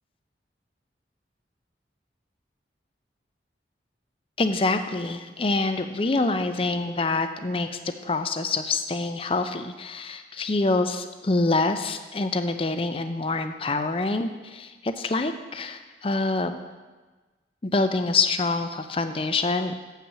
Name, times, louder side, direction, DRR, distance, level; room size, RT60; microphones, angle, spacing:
voice 1, 4.4-16.6 17.6-19.7, left 3 dB, 30° left, 9 dB, 0.5 m, -26 dB
7.2 x 5.7 x 7.4 m, 1.3 s
head